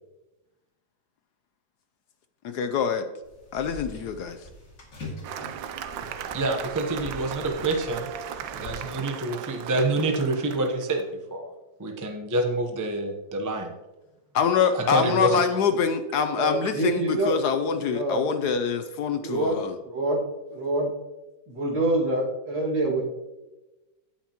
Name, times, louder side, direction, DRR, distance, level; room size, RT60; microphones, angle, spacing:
voice 1, 2.4-3.0 3.5-4.4 14.3-19.7, left 6 dB, 70° left, 8 dB, 1.0 m, -25 dB
sound 1, 3.2-8.7, left 2 dB, 45° left, 2.7 m, -43 dB
Cheering / Applause, 5.2-11.0, right 8 dB, 80° right, 1.4 m, -37 dB
voice 2, 6.3-8.1 8.5-11.1 11.3-11.5 11.8-13.7 14.7-15.4, right 2 dB, 25° right, 3 dB, 0.3 m, -27 dB
voice 3, 16.3-17.4 17.8-18.3 19.2-20.2 20.5-20.9 21.5-23.0, right 2 dB, 65° right, -2 dB, 2.7 m, -26 dB
17.0 x 5.8 x 2.9 m, 1.0 s
omnidirectional pair, 2.1 m